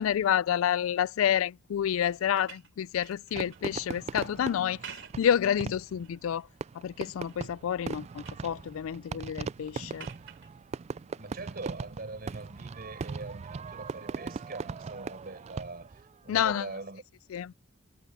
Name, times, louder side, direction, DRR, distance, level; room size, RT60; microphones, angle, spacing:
voice 1, 0.0-6.5 6.7-10.1 16.3-16.6 17.3-17.5, left 9 dB, 85° left, 0.3 m, -29 dB
sound 1, 1.9-3.7 4.6-5.4 5.9-6.5 7.0-7.5 7.8-8.5 10.0-10.5 12.3-12.4, right 7 dB, 65° right, 3.3 m, -50 dB
Fireworks, 3.4-16.1, right 5 dB, 35° right, 0.3 m, -39 dB
voice 2, 11.1-17.0, right 3 dB, 50° right, 4.7 m, -42 dB
head